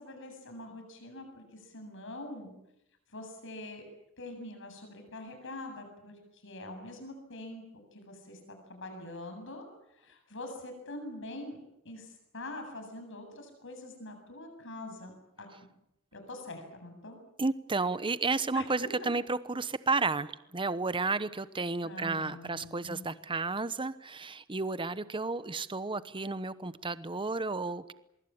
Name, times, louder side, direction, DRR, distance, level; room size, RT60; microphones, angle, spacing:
voice 1, 0.0-2.5 3.1-3.9 4.2-6.1 6.4-7.6 7.9-8.4 8.7-9.7 10.0-11.6 11.8-15.1 15.4-15.5 16.1-17.2 18.5-18.6 21.8-23.1, left 2 dB, 60° left, 6 dB, 7.8 m, -44 dB
voice 2, 17.4-27.9, right 3 dB, 25° right, 15 dB, 1.0 m, -32 dB
24.5 x 23.0 x 8.8 m, 0.82 s
head